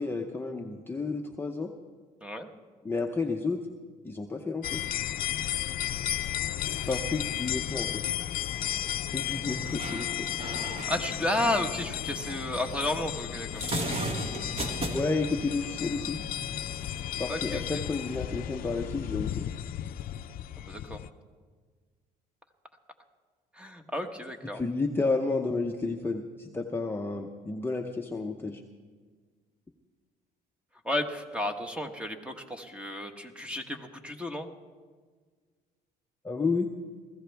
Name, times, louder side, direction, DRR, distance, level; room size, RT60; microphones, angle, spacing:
voice 1, 0.0-1.7 2.8-3.6 4.0-4.8 6.9-7.9 9.1-10.3 14.9-16.2 17.2-19.5 24.5-28.6 36.2-36.7, left 3 dB, 15° left, 2 dB, 0.8 m, -31 dB
sound 1, 4.6-21.1, left 12 dB, 60° left, 0.6 m, -34 dB
sound 2, 9.3-17.3, right 1 dB, 35° right, 1.8 m, -38 dB
voice 2, 10.9-13.6 17.3-17.6 20.6-21.0 23.5-24.6 30.8-34.5, left 1 dB, 5° right, 6 dB, 1.3 m, -32 dB
20.5 x 15.0 x 3.5 m, 1.5 s
cardioid pair, 110°, 17 cm